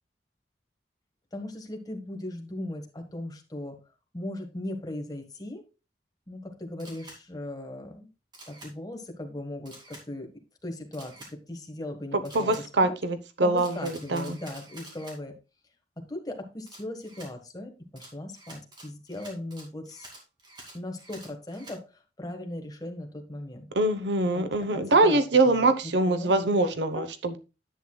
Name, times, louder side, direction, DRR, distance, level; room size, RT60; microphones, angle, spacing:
voice 1, 1.3-3.7 4.1-5.6 6.3-8.1 8.5-10.3 10.6-13.0 13.4-15.3 16.0-20.1 20.7-23.7 24.3-26.3 26.9-27.1, left 1 dB, 20° left, 4 dB, 1.4 m, -38 dB
Camera, 6.8-7.2 8.3-8.7 9.7-10.0 10.9-11.3 12.2-12.6 13.6-15.2 16.7-17.3 18.0-21.8, right 1 dB, 25° right, 2.4 m, -48 dB
voice 2, 12.1-14.4 23.7-27.4, right 2 dB, 80° right, 10 dB, 1.0 m, -24 dB
10.0 x 8.0 x 2.3 m, 0.29 s
head